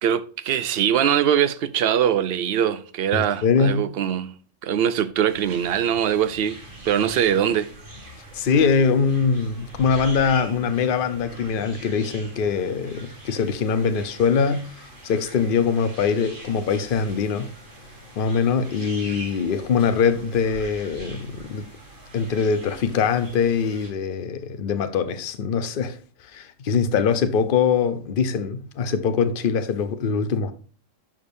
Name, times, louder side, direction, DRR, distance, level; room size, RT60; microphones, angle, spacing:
voice 1, 0.0-4.3 4.6-6.6 6.8-7.7, right 9 dB, 60° right, 0.7 m, -22 dB
voice 2, 3.1-3.8 8.3-14.7 15.0-17.5 18.2-21.7 22.1-26.0 26.3-30.5, left 6 dB, 50° left, 0.8 m, -22 dB
sound 1, 5.3-23.9, right 1 dB, 40° right, 2.4 m, -42 dB
11.0 x 5.2 x 2.6 m
omnidirectional pair, 1.3 m